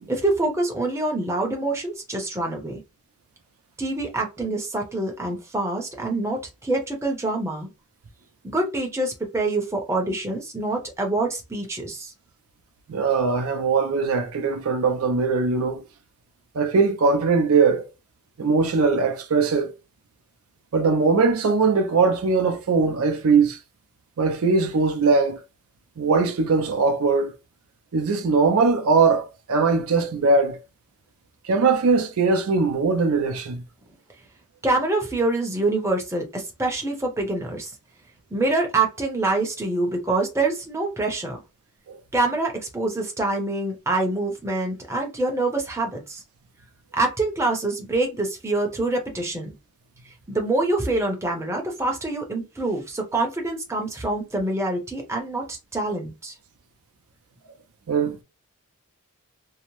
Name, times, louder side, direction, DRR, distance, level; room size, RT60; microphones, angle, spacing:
voice 1, 0.1-2.8 3.8-7.7 8.4-12.1 34.6-37.7 38.3-41.4 42.1-46.2 46.9-49.5 50.3-56.3, right 2 dB, 10° right, 0.6 m, -25 dB
voice 2, 12.9-15.8 16.5-17.9 18.4-19.7 20.7-23.6 24.2-25.4 26.0-27.3 27.9-30.6 31.5-33.6 41.9-42.0 57.9-58.2, right 4 dB, 75° right, 0.4 m, -20 dB
2.7 x 2.0 x 2.9 m
head